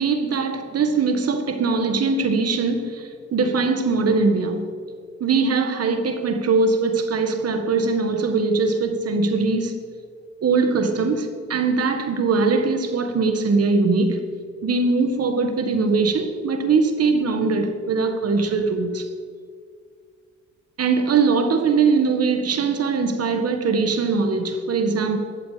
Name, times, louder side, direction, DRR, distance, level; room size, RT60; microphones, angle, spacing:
voice 1, 0.0-4.7 5.2-9.8 10.4-14.3 14.6-19.1 20.8-25.2, right 4 dB, 55° right, 1.7 m, -21 dB
15.5 x 13.0 x 5.1 m
cardioid pair, 90°, 30 cm